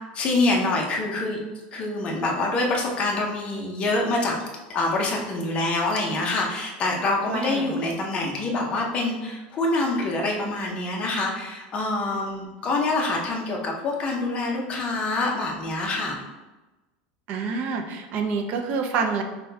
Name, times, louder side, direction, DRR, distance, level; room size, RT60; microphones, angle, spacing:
voice 1, 0.1-1.4 1.7-4.4 4.7-16.2, left 2 dB, 25° left, -1 dB, 0.6 m, -26 dB
voice 2, 7.3-7.7 17.3-19.2, right 5 dB, 40° right, 4 dB, 0.4 m, -27 dB
5.6 x 2.2 x 2.7 m, 1.1 s
supercardioid pair, 165°, 4 cm